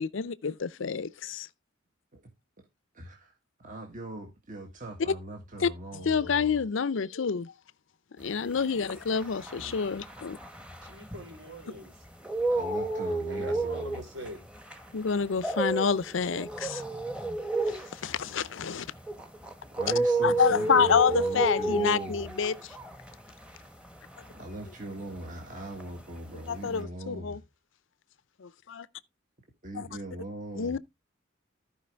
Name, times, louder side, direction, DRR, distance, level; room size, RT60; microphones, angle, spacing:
voice 1, 0.0-1.5 5.6-7.5 8.2-10.4 14.9-16.8 17.7-18.9 20.2-22.7 26.5-27.4 28.4-28.9 29.8-29.9 30.6-30.8, left 6 dB, 70° left, 0.5 m, -28 dB
voice 2, 2.9-3.3 3.6-6.7 9.6-9.9 12.5-14.0 19.7-22.3 24.3-27.4 29.6-30.8, right 1 dB, 40° right, 1.7 m, -41 dB
sound 1, 8.4-11.7 12.1-25.5 25.7-26.8, right 2 dB, 5° right, 1.2 m, -32 dB
voice 3, 10.8-12.0 13.3-14.4, right 1 dB, 60° right, 4.4 m, -42 dB
14.5 x 5.2 x 3.4 m
head